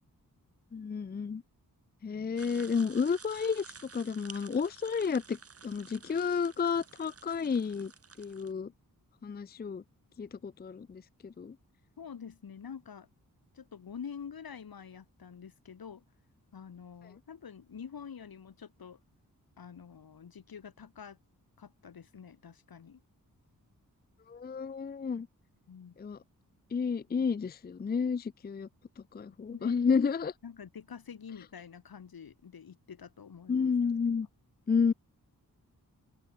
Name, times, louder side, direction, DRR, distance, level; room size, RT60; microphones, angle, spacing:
voice 1, 0.7-1.4 2.0-7.9 8.2-8.7 9.2-9.8 10.2-11.6 24.3-25.3 26.0-26.2 26.7-28.7 29.1-30.3 33.5-34.3 34.7-34.9, left 5 dB, 30° left, 0.5 m, -31 dB
sound 1, 2.4-8.5, right 5 dB, 40° right, 1.6 m, -52 dB
voice 2, 12.0-13.1 13.5-16.0 16.5-19.0 19.6-21.2 21.6-23.0 25.7-26.0 29.5-29.8 30.4-33.7, left 7 dB, 85° left, 6.2 m, -47 dB
open air
wide cardioid pair, 115°, 35 cm